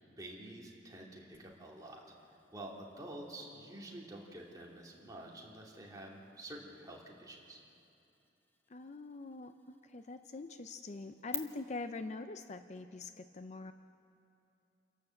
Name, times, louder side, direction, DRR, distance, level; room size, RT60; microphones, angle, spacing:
voice 1, 0.2-2.0 2.5-7.6, right 1 dB, 20° right, -2 dB, 2.5 m, -48 dB
sound 1, 1.3-11.4, left 4 dB, 10° left, 1.1 m, -53 dB
voice 2, 8.7-13.7, left 3 dB, 40° left, 9 dB, 0.5 m, -44 dB
28.5 x 12.0 x 7.7 m, 2.8 s
head